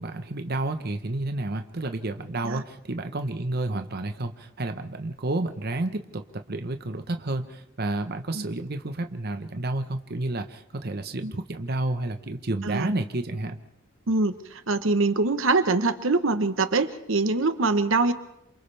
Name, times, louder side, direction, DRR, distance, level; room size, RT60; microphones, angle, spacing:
voice 1, 0.0-13.6, right 2 dB, 50° right, 7 dB, 1.1 m, -30 dB
voice 2, 14.1-18.1, right 3 dB, 80° right, 10 dB, 1.1 m, -24 dB
28.5 x 27.0 x 3.5 m, 0.78 s
head